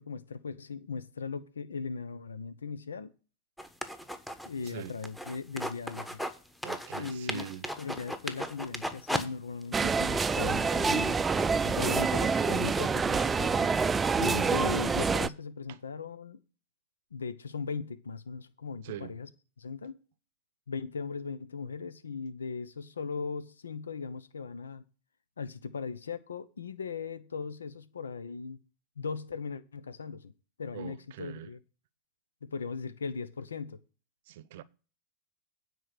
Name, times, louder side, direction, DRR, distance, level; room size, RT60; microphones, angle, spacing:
voice 1, 0.0-3.1 4.4-6.2 7.0-7.5 7.8-11.2 11.6-13.8 14.2-16.4 17.1-19.3 19.6-20.0 20.7-24.8 25.4-28.6 29.0-30.3 30.6-31.6 32.4-33.8, left 5 dB, 85° left, 0.9 m, -38 dB
sound 1, 3.6-6.4 6.6-9.3 9.6-9.7 10.1-13.7, equal, 5° left, 1.2 m, -37 dB
voice 2, 6.6-7.7 15.7-15.8 18.8-19.2 30.7-31.5 34.3-34.6, right 12 dB, 65° right, 0.7 m, -43 dB
sound 2, 9.7-15.3, right 5 dB, 15° right, 0.5 m, -27 dB
9.3 x 4.7 x 7.8 m
hypercardioid pair, 100°, 0 cm